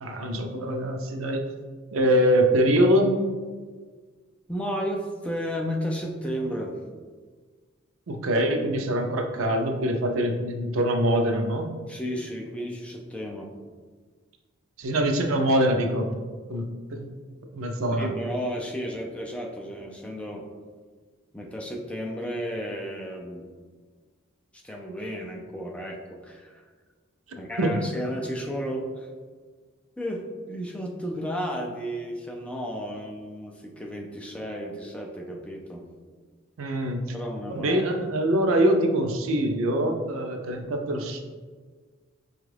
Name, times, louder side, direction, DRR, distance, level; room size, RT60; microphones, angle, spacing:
voice 1, 0.0-1.5 1.9-3.2 8.1-11.7 14.8-16.1 16.5-16.6 16.9-17.1 17.5-18.1 27.6-27.8 36.6-37.0 37.5-41.2, right 1 dB, 85° right, 4 dB, 0.5 m, -24 dB
voice 2, 4.5-6.8 11.9-13.5 18.0-20.4 21.3-23.5 24.5-26.6 27.4-29.1 30.0-35.9 37.1-37.8, equal, 5° left, 0 dB, 0.4 m, -33 dB
5.1 x 2.4 x 3.2 m, 1.5 s
head